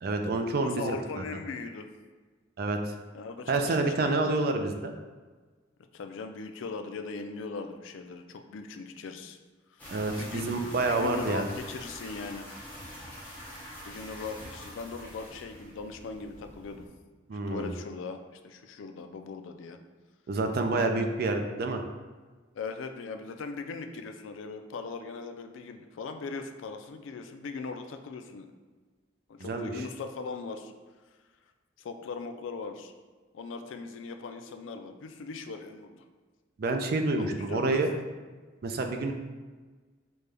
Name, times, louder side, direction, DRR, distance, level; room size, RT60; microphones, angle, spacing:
voice 1, 0.0-1.2 2.6-2.9 3.5-4.9 9.9-11.5 17.3-17.7 20.3-21.8 29.4-29.8 36.6-37.9 38.6-39.1, right 3 dB, 50° right, 5 dB, 0.4 m, -28 dB
voice 2, 0.6-1.9 3.1-4.4 5.9-9.4 9.7-10.5 10.9-12.5 13.9-16.9 17.5-19.8 22.5-28.5 29.3-30.7 31.8-32.9 33.3-36.0 37.2-37.8, left 4 dB, 80° left, 6 dB, 0.4 m, -39 dB
sound 1, 9.8-16.9, equal, 10° left, 0.8 m, -45 dB
5.2 x 2.2 x 3.3 m, 1.4 s
head